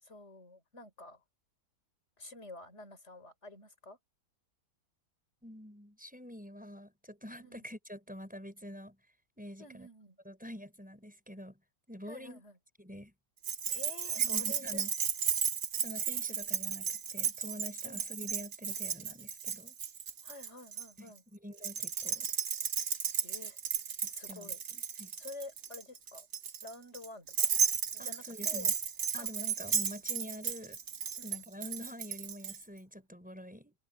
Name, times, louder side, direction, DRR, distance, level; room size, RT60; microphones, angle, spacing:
voice 1, 0.0-1.2 2.2-4.0 7.4-7.6 9.6-10.2 12.1-12.6 13.7-14.8 17.8-18.0 20.2-21.2 23.2-23.6 24.1-24.6 25.1-26.3 26.6-27.5 27.9-28.7 29.2-29.3 31.2-31.4, left 2 dB, 40° left, 4.8 m, -49 dB
voice 2, 5.4-9.0 9.4-9.9 10.2-11.6 11.9-12.4 12.8-13.1 14.2-14.9 15.8-19.8 21.3-22.3 24.3-25.1 28.0-28.7 29.1-30.8 31.2-33.7, equal, 5° right, 6.1 m, -46 dB
Keys jangling, 13.4-20.9 21.6-32.6, right 7 dB, 60° right, 1.8 m, -34 dB
omnidirectional pair, 1.8 m